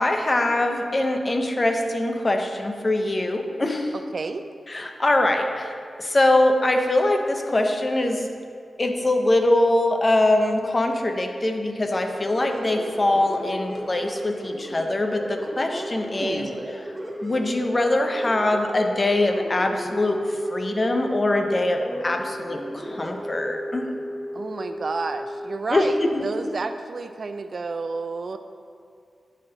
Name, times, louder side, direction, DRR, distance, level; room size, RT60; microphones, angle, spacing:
voice 1, 0.0-3.9 4.7-8.3 8.8-16.5 17.2-20.2 20.5-23.9 25.7-26.3, left 1 dB, 35° left, 4 dB, 0.7 m, -23 dB
voice 2, 3.9-4.4 16.1-16.7 24.3-28.4, right 4 dB, 60° right, 9 dB, 0.4 m, -31 dB
sound 1, 11.8-25.6, equal, 25° right, 1.0 m, -35 dB
10.0 x 4.3 x 3.9 m, 2.4 s
cardioid pair, 55°, 0 cm